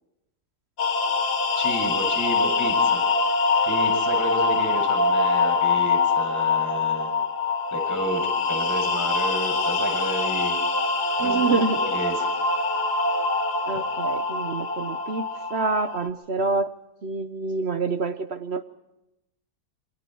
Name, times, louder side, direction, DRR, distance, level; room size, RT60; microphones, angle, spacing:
sound 1, 0.8-16.1, left 4 dB, 85° left, 1.9 m, -24 dB
voice 1, 1.5-3.0 3.6-7.1 7.7-8.2 8.5-10.6 11.2-12.1, right 1 dB, 10° left, 0 dB, 7.6 m, -31 dB
voice 2, 11.2-11.8 13.7-16.7 17.0-18.6, right 4 dB, 50° right, 10 dB, 1.0 m, -27 dB
28.0 x 23.5 x 4.6 m, 0.88 s
omnidirectional pair, 1.7 m